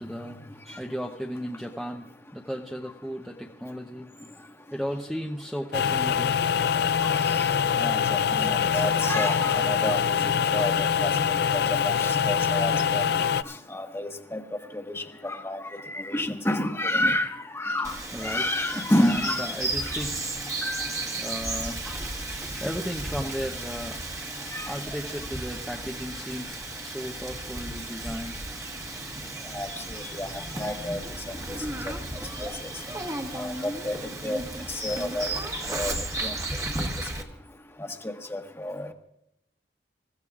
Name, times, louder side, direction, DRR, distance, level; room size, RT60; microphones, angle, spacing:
voice 1, 0.0-2.1 2.3-4.1 4.7-6.4 18.1-18.5 19.0-22.1 22.4-24.0 24.4-28.4, equal, ahead, 0 dB, 0.8 m, -35 dB
sound 1, 5.7-13.4, left 7 dB, 60° left, 0.4 m, -24 dB
voice 2, 7.2-7.5 7.8-11.1 11.5-13.1 13.7-14.4 14.7-15.6 15.9-17.9 18.2-19.5 24.5-24.7 29.5-30.3 30.6-31.0 31.8-31.9 32.4-32.7 33.3-34.0 34.2-34.4 34.7-35.3 35.7-35.9 36.2-36.6 38.3-38.9, left 1 dB, 15° left, 4 dB, 1.4 m, -29 dB
Bird vocalization bird call bird song, 17.8-37.2, right 2 dB, 20° right, 1.5 m, -34 dB
sound 2, 19.7-34.4, equal, 60° right, 2.4 m, -52 dB
27.5 x 15.0 x 2.4 m, 0.80 s
head